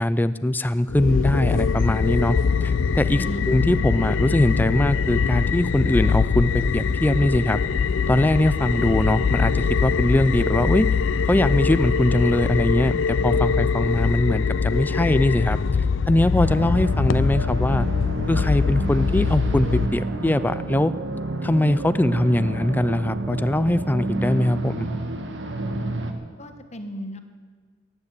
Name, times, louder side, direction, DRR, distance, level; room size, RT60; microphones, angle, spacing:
voice 1, 0.0-7.6 8.1-10.9 11.3-15.6 16.1-17.9 18.3-20.9 21.4-24.9, left 1 dB, 10° left, 14 dB, 0.4 m, -21 dB
sound 1, 0.9-19.9, left 5 dB, 80° left, 0.5 m, -23 dB
voice 2, 3.2-3.5 26.4-27.2, equal, 35° left, 7 dB, 1.3 m, -34 dB
sound 2, 16.4-26.1, right 2 dB, 70° right, 1.4 m, -30 dB
14.5 x 10.0 x 8.2 m, 1.5 s
head